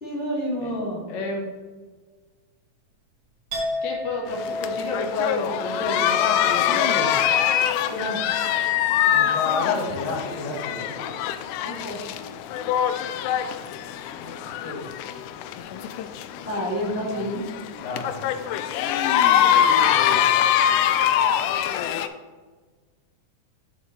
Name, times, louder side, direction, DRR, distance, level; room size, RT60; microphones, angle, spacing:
voice 1, 0.0-1.0 7.8-8.2 11.6-12.0 16.4-17.4, equal, 20° left, -7 dB, 1.9 m, -29 dB
voice 2, 1.1-1.5 3.8-7.1 9.1-11.2 14.2-15.1 17.1-17.2 17.8-18.5 19.8-20.3, left 3 dB, 60° left, -1 dB, 2.5 m, -31 dB
Chink clink, 3.5-11.2 11.5-12.2, left 3 dB, 90° right, 4.2 m, -34 dB
sound 1, 4.3-22.1, left 10 dB, 80° left, 1.9 m, -24 dB
8.9 x 6.9 x 3.2 m, 1.4 s
omnidirectional pair, 3.8 m